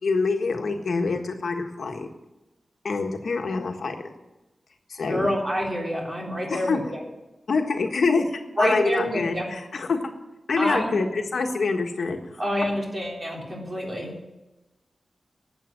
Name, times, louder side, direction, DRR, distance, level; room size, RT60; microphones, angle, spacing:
voice 1, 0.0-2.1 2.8-4.1 4.9-5.3 6.5-6.8 7.5-10.1 10.5-12.4, left 4 dB, 75° left, 4 dB, 1.5 m, -26 dB
voice 2, 5.1-7.0 8.6-9.5 10.6-10.9 12.4-14.1, equal, 30° right, -2 dB, 3.6 m, -27 dB
11.5 x 8.0 x 9.1 m, 1.0 s
wide cardioid pair, 135°, 0 cm